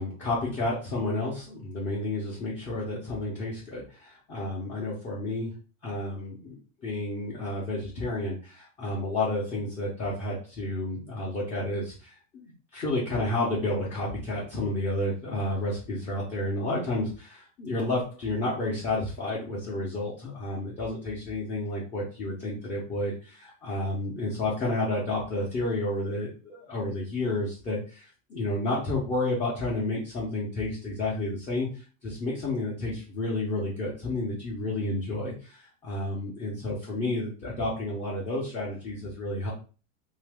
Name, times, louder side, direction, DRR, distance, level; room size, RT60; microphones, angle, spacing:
voice 1, 0.0-5.5 5.8-39.5, left 2 dB, 15° left, -6 dB, 0.9 m, -31 dB
2.8 x 2.8 x 3.4 m, 0.36 s
supercardioid pair, 155°, 39 cm